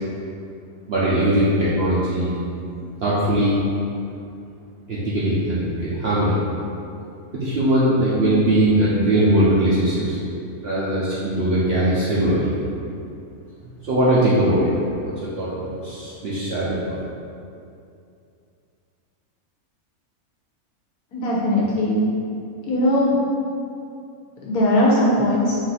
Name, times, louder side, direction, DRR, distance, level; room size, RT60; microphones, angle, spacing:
voice 1, 0.9-2.4 3.0-3.6 4.9-6.4 7.3-10.2 10.6-12.5 13.8-14.7 15.2-16.9, right 1 dB, 55° right, -9 dB, 0.7 m, -20 dB
voice 2, 21.1-22.0 22.7-23.1 24.4-25.6, left 1 dB, 75° left, -5 dB, 1.3 m, -19 dB
4.0 x 2.6 x 4.0 m, 2.5 s
omnidirectional pair, 1.6 m